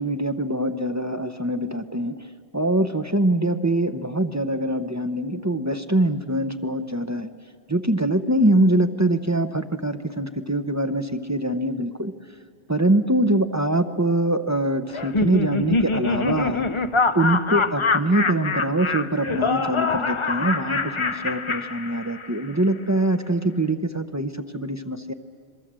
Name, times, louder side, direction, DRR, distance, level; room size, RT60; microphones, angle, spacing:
voice 1, 0.0-2.2 2.5-7.3 7.7-12.1 12.7-16.7 17.1-25.1, right 1 dB, 15° right, 9 dB, 0.7 m, -23 dB
Laughter, 14.9-22.4, left 3 dB, 35° left, 0.5 m, -25 dB
27.0 x 23.0 x 7.5 m, 2.2 s
omnidirectional pair, 1.2 m